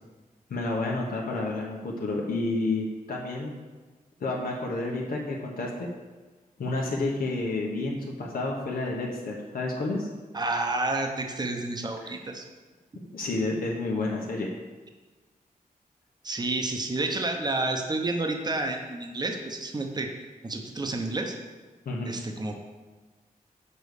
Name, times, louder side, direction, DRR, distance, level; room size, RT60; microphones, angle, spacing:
voice 1, 0.5-3.5 4.2-5.9 6.6-10.1 12.0-12.1 13.1-14.5 21.8-22.1, left 2 dB, 85° left, -2 dB, 1.1 m, -30 dB
voice 2, 10.3-12.4 16.2-20.1 20.4-21.3 22.0-22.6, right 2 dB, 30° right, 3 dB, 0.9 m, -30 dB
5.4 x 5.2 x 6.5 m, 1.3 s
wide cardioid pair, 100°, 15 cm